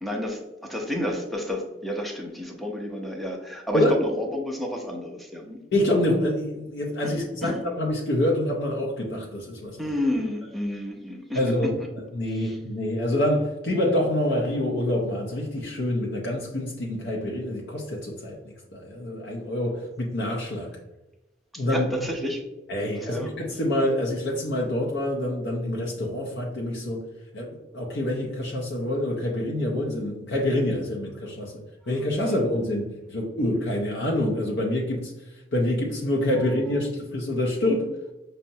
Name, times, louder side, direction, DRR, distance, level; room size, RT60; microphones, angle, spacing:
voice 1, 0.0-5.6 7.4-7.6 9.8-11.9 12.3-12.6 21.5-22.4 22.9-23.3 32.2-32.4, left 1 dB, ahead, 1 dB, 0.5 m, -31 dB
voice 2, 5.7-9.8 11.4-11.7 12.1-20.8 21.6-21.9 22.7-27.0 27.3-31.5 31.9-35.1 35.5-37.9, left 1 dB, 65° left, -2 dB, 0.6 m, -26 dB
5.4 x 2.1 x 2.6 m, 1.0 s
head